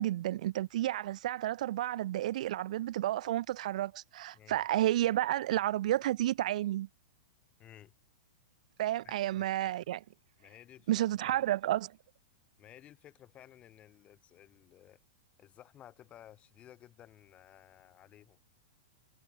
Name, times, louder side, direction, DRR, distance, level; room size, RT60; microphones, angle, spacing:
voice 1, 0.0-6.9 8.8-10.0 10.9-12.0, right 14 dB, 65° right, 0.4 m, -31 dB
voice 2, 7.6-7.9 9.0-9.5 10.4-11.5 12.6-15.0 15.4-18.4, left 12 dB, 30° left, 6.0 m, -56 dB
hypercardioid pair, 120°, 4 cm